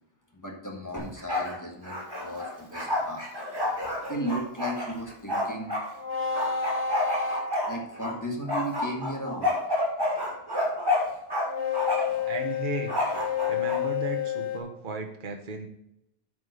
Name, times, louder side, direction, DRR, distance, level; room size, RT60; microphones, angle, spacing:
voice 1, 0.3-3.3 4.1-5.7 7.7-9.6, equal, 15° left, 0 dB, 1.6 m, -35 dB
Bark, 1.0-1.5 1.8-5.8 6.3-8.1 8.5-11.4 11.7-12.2 12.9-13.8, left 1 dB, 20° right, 2.9 m, -29 dB
sound 1, 5.9-8.2 11.4-14.6, left 7 dB, 85° left, 2.1 m, -30 dB
voice 2, 12.2-12.9 13.5-15.7, right 2 dB, 50° right, 4 dB, 1.2 m, -35 dB
8.8 x 4.8 x 6.6 m, 0.80 s
omnidirectional pair, 1.1 m